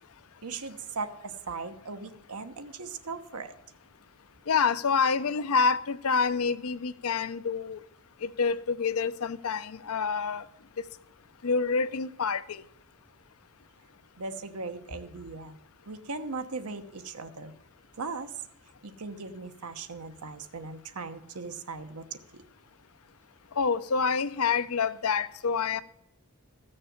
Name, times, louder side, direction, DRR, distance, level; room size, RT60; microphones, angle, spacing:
voice 1, 0.4-3.5 14.2-15.6 15.9-17.5 18.0-18.3 18.8-22.4, right 4 dB, 85° right, 1.1 m, -38 dB
voice 2, 4.5-7.8 8.2-10.4 11.4-12.6 23.6-25.8, left 5 dB, 75° left, 0.6 m, -27 dB
14.5 x 6.6 x 7.2 m
head